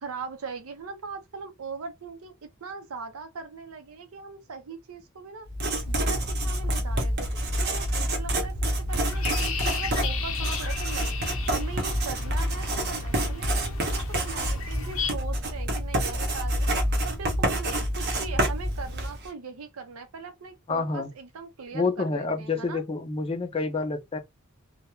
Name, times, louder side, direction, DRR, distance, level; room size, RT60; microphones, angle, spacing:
voice 1, 0.0-2.3 2.6-5.5 5.9-8.5 8.9-11.1 11.5-16.7 17.0-22.8, right 5 dB, 85° right, 0.6 m, -40 dB
Writing, 5.5-19.3, right 1 dB, 50° right, 0.7 m, -27 dB
sound 1, 8.9-15.1, left 5 dB, 65° left, 0.7 m, -35 dB
voice 2, 20.7-21.1 21.7-24.2, left 3 dB, 25° left, 0.4 m, -28 dB
2.3 x 2.1 x 2.9 m
head